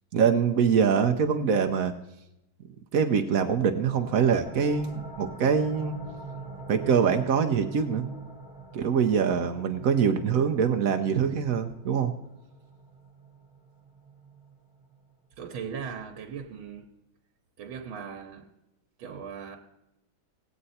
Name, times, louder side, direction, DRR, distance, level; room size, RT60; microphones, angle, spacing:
voice 1, 0.1-1.9 2.9-6.0 6.7-8.1 8.7-12.1, right 7 dB, 65° right, 5 dB, 0.9 m, -24 dB
sound 1, 3.9-15.2, right 4 dB, 5° right, 1.6 m, -44 dB
voice 2, 15.4-16.9 17.6-18.5 19.0-19.6, right 6 dB, 85° right, 2 dB, 1.7 m, -38 dB
18.5 x 7.7 x 4.2 m, 0.87 s
omnidirectional pair, 2.2 m